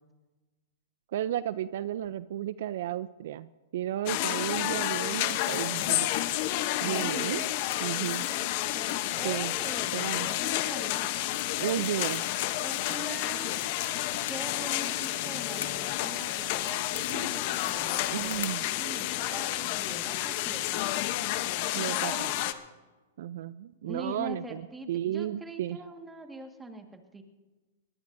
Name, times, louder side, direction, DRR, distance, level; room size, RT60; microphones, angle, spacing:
voice 1, 1.1-6.1 6.8-7.4 7.8-8.3 9.2-9.5 9.9-10.3 11.6-12.2 18.1-18.6 21.7-22.3 23.2-25.8, right 12 dB, 65° right, 16 dB, 0.4 m, -33 dB
sound 1, 4.1-22.5, left 15 dB, 50° left, 0.8 m, -30 dB
sound 2, 4.4-18.6, left 8 dB, 90° left, 1.4 m, -46 dB
voice 2, 6.8-7.5 8.3-8.5 8.7-11.1 11.7-12.2 12.6-13.5 14.3-21.0 21.9-22.3 23.8-27.2, right 1 dB, 10° right, 5 dB, 1.6 m, -43 dB
21.5 x 17.5 x 2.6 m, 1.2 s
hypercardioid pair, 135°, 0 cm